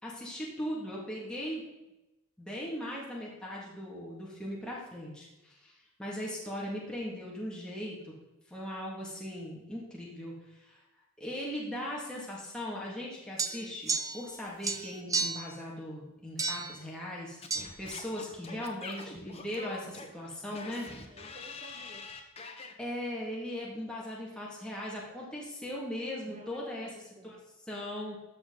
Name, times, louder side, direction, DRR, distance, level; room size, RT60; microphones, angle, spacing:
voice 1, 0.0-1.6 2.4-8.1 8.5-10.8 11.2-17.4 17.8-21.2 22.8-26.9 27.2-27.4 27.7-28.2, equal, 5° left, -5 dB, 2.2 m, -39 dB
sound 1, 13.4-14.4 14.6-15.5 16.4-16.8 17.5-17.7, right 4 dB, 15° right, 0.7 m, -32 dB
Singing / Scratching (performance technique), 17.4-22.7, left 3 dB, 30° left, 1.2 m, -45 dB
voice 2, 21.0-22.2 26.2-27.4, right 1 dB, 35° right, 3 dB, 1.7 m, -53 dB
13.0 x 7.0 x 4.0 m, 0.98 s
head